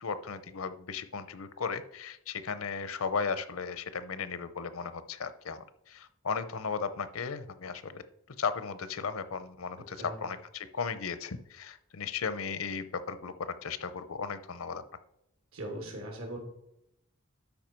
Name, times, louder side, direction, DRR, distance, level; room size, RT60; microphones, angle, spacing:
voice 1, 0.0-8.0 8.4-14.8, left 5 dB, 80° left, 13 dB, 0.7 m, -36 dB
voice 2, 15.5-16.4, right 1 dB, 85° right, 1 dB, 2.8 m, -39 dB
12.5 x 5.0 x 4.5 m, 0.81 s
head